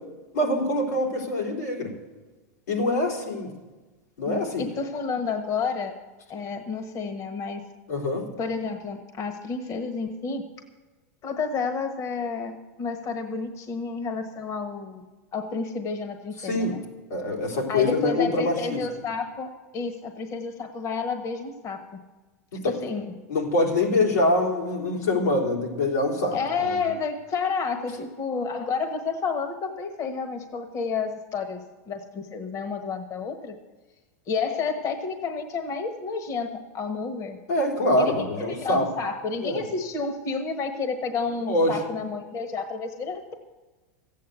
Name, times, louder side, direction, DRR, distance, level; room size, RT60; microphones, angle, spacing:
voice 1, 0.3-1.9 2.7-3.5 4.2-4.6 7.9-8.2 16.4-16.8 17.1-18.8 22.5-22.7 23.3-26.4 37.5-38.9 39.4-39.6 41.5-41.8, left 2 dB, 90° left, -2 dB, 3.7 m, -24 dB
voice 2, 4.2-5.9 6.3-7.6 8.4-10.4 11.2-15.0 15.3-16.8 17.7-21.8 22.7-23.1 26.3-33.6 34.3-37.4 38.0-43.4, left 5 dB, 40° left, 7 dB, 1.3 m, -30 dB
14.0 x 8.6 x 8.1 m, 1.2 s
hypercardioid pair, 115°, 9 cm